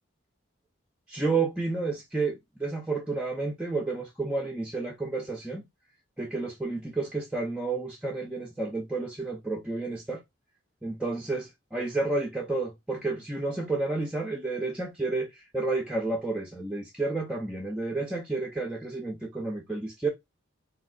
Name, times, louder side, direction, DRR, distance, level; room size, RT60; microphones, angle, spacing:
voice 1, 1.1-5.6 6.2-10.2 10.8-20.1, right 3 dB, 5° right, 0.3 m, -31 dB
3.4 x 2.1 x 2.3 m
head